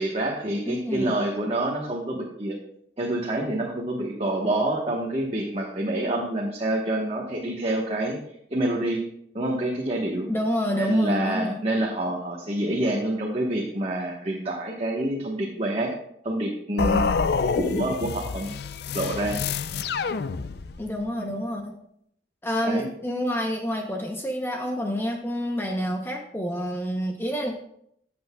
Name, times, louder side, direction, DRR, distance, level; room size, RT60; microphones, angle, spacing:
voice 1, 0.0-2.6 3.0-8.2 8.5-9.0 9.3-10.3 10.8-15.9 16.2-17.0 17.6-18.5 18.9-19.4 21.3-21.4 22.6-22.9, right 1 dB, 35° right, -2 dB, 1.1 m, -27 dB
voice 2, 0.7-1.1 10.3-11.6 20.8-21.8 22.4-27.5, equal, 15° left, 2 dB, 0.7 m, -28 dB
sound 1, 16.8-20.9, left 5 dB, 60° left, 0.4 m, -27 dB
13.5 x 7.9 x 2.3 m, 0.70 s
head